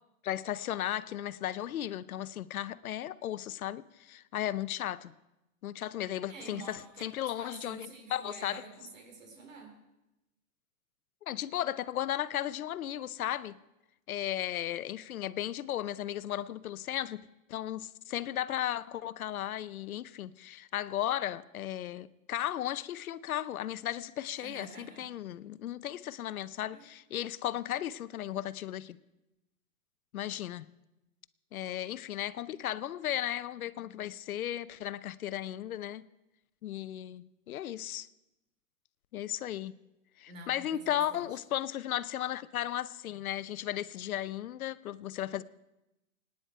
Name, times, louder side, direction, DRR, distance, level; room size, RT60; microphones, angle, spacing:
voice 1, 0.2-5.1 5.6-8.6 11.2-13.6 14.1-29.0 30.1-30.6 31.5-36.0 36.6-38.1 39.1-39.7 40.2-45.4, left 12 dB, 80° left, 0.7 m, -35 dB
voice 2, 6.3-7.0 7.4-9.7 24.3-25.1 26.7-26.8 40.3-41.4, right 3 dB, 65° right, 3.6 m, -48 dB
25.0 x 9.9 x 4.5 m
hypercardioid pair, 180°, 42 cm